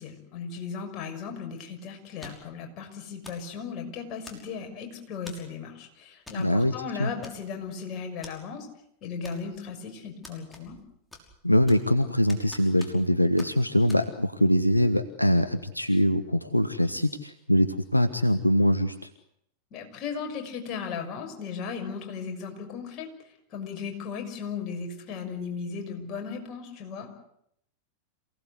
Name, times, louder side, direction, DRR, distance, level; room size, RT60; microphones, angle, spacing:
voice 1, 0.0-8.7 9.0-10.8 19.7-27.1, left 6 dB, 35° left, 4 dB, 6.3 m, -36 dB
sound 1, 2.2-2.6 3.2-3.5 4.2-4.7 5.3-5.5 6.3-6.5 6.7-6.8 7.2-7.7 8.2-8.4 9.2-9.7 10.2-10.8 11.1-11.9 12.3-13.1 13.4-13.5 13.9-14.0, left 2 dB, 10° left, 5.7 m, -47 dB
voice 2, 6.3-6.7 7.0-7.1 11.4-19.1, left 1 dB, 85° left, 10 dB, 1.2 m, -23 dB
27.5 x 18.0 x 8.3 m, 0.73 s
figure-of-eight pair, 90°, 0 cm